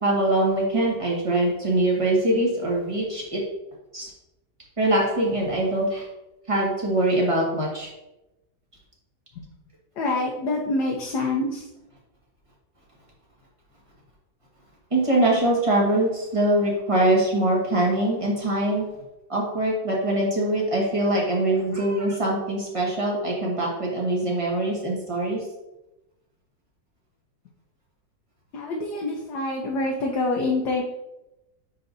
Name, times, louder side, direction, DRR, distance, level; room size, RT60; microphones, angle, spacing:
voice 1, 0.0-3.4 3.9-4.1 4.8-6.1 6.5-7.9 14.9-18.8 19.3-25.4, right 1 dB, 20° right, -3 dB, 1.3 m, -23 dB
voice 2, 10.0-11.7 28.5-30.8, left 2 dB, 65° left, -1 dB, 1.3 m, -26 dB
10.0 x 3.9 x 2.7 m, 0.96 s
omnidirectional pair, 2.0 m